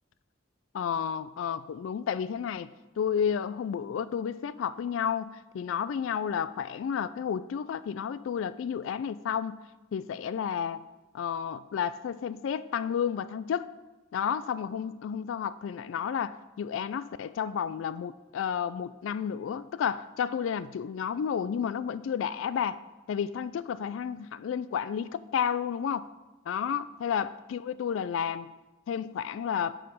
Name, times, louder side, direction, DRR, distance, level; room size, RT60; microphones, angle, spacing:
voice 1, 0.7-2.7 3.0-9.7 9.9-10.8 11.1-13.7 14.1-22.8 23.1-26.1 26.5-28.5 28.9-29.7, left 7 dB, 85° left, 15 dB, 0.3 m, -31 dB
8.9 x 4.8 x 6.2 m, 1.1 s
head